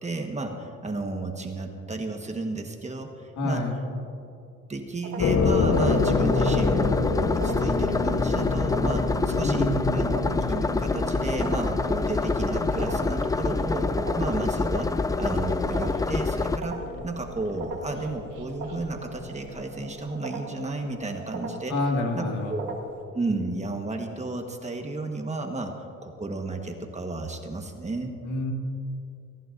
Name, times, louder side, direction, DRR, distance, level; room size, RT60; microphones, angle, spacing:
voice 1, 0.0-3.6 4.7-13.9 14.2-21.8 22.1-22.2 22.5-22.7 23.1-25.7 26.0-28.1, right 2 dB, 25° right, 3 dB, 1.4 m, -32 dB
voice 2, 3.4-3.8 9.4-10.2 21.7-22.6 28.2-28.5, left 2 dB, 75° left, 1 dB, 2.0 m, -27 dB
sound 1, 5.0-23.0, right 2 dB, 75° right, 2.3 m, -41 dB
sound 2, 5.2-20.0, left 4 dB, 50° left, 1.0 m, -30 dB
sound 3, 5.7-16.6, left 3 dB, 10° left, 0.3 m, -27 dB
26.0 x 11.0 x 2.6 m, 2.6 s
cardioid pair, 90°, 30 cm